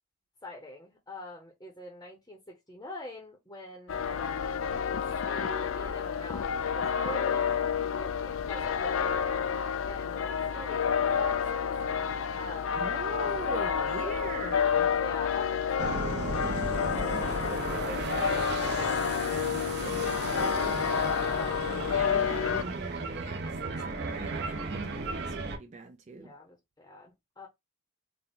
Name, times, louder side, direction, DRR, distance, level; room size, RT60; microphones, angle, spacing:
voice 1, 0.4-4.4 4.8-7.6 7.9-9.4 9.9-11.7 12.3-12.8 14.0-14.2 14.9-18.0 18.3-20.1 21.2-21.7 26.1-27.5, left 1 dB, 15° left, 0.8 m, -45 dB
sound 1, 3.9-22.6, left 7 dB, 70° left, 0.4 m, -29 dB
voice 2, 12.7-14.9 21.7-26.3, right 3 dB, 35° right, 0.3 m, -41 dB
sound 2, 15.8-25.6, right 3 dB, 50° right, 0.7 m, -35 dB
4.1 x 2.2 x 3.6 m
head